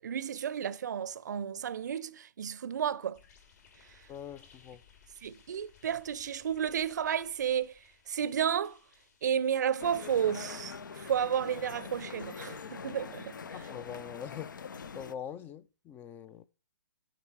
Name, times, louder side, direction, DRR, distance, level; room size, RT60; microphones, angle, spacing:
voice 1, 0.0-3.2 5.2-7.7 8.1-8.8 9.2-13.4, right 8 dB, 60° right, 0.6 m, -32 dB
sound 1, 3.1-10.2, left 6 dB, 55° left, 3.0 m, -62 dB
voice 2, 4.1-4.8 13.5-14.6 14.9-16.4, left 8 dB, 20° left, 0.4 m, -43 dB
sound 2, 9.8-15.2, left 6 dB, 70° left, 0.6 m, -44 dB
10.0 x 5.0 x 4.7 m
figure-of-eight pair, 125°, 11 cm